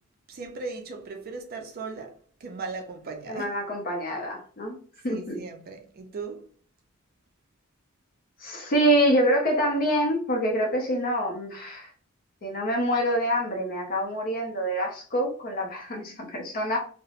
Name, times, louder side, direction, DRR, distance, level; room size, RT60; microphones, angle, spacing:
voice 1, 0.3-3.5 5.1-6.5, right 4 dB, 45° right, 0.4 m, -38 dB
voice 2, 3.3-4.8 5.0-5.4 8.4-11.9 12.4-16.8, equal, 45° left, 0.6 m, -26 dB
2.9 x 2.0 x 2.4 m
head